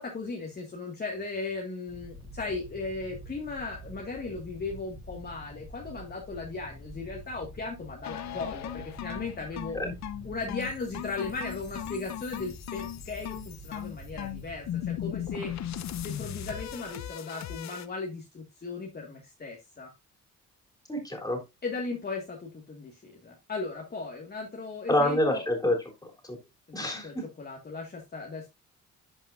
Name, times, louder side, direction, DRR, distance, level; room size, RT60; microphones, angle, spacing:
voice 1, 0.0-9.8 10.2-15.5 16.0-19.9 21.6-25.4 26.7-28.5, left 3 dB, 30° left, 0 dB, 1.9 m, -37 dB
sound 1, 1.9-16.9, equal, 15° right, 3.3 m, -47 dB
sound 2, 8.0-17.9, left 11 dB, 65° left, 0.8 m, -38 dB
voice 2, 20.9-21.4 24.9-25.8 26.0-26.4 26.7-27.2, left 1 dB, 10° left, 1 dB, 3.5 m, -27 dB
11.5 x 5.4 x 2.6 m, 0.23 s
cardioid pair, 90°, 30 cm